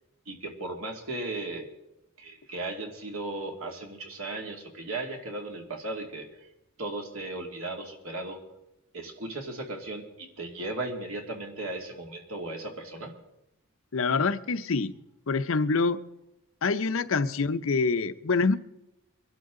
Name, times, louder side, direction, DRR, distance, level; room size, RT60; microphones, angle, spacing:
voice 1, 0.3-1.7 2.2-6.4 6.8-8.4 8.9-13.2, right 2 dB, 90° right, 2.4 m, -36 dB
voice 2, 13.9-14.9 15.3-16.0 16.6-18.6, left 4 dB, 70° left, 0.7 m, -25 dB
23.5 x 12.0 x 3.8 m
head